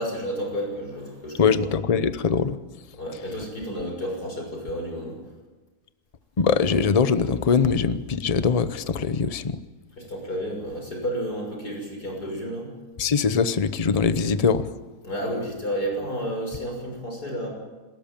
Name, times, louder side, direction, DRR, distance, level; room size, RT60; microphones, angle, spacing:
voice 1, 0.0-1.7 2.9-5.2 10.0-12.7 15.0-17.5, equal, 65° left, 1 dB, 6.9 m, -31 dB
voice 2, 1.4-2.6 6.4-9.6 13.0-14.7, left 5 dB, 30° left, 13 dB, 0.7 m, -22 dB
29.0 x 13.5 x 9.0 m, 1.3 s
omnidirectional pair, 1.8 m